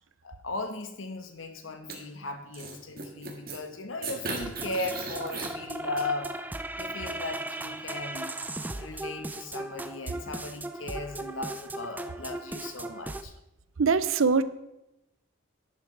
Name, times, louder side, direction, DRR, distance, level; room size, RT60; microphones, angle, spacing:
voice 1, 0.2-6.3 6.8-8.3 8.7-13.3, left 2 dB, 80° left, 6 dB, 1.2 m, -37 dB
sound 1, 1.9-2.0 2.5-3.6 4.0-5.5 6.0-6.1, right 4 dB, 45° right, 1.7 m, -36 dB
sound 2, 4.4-13.2, right 2 dB, 10° right, 0.3 m, -37 dB
voice 2, 13.8-14.4, right 5 dB, 85° right, 14 dB, 0.6 m, -22 dB
11.0 x 11.0 x 3.3 m, 0.91 s
head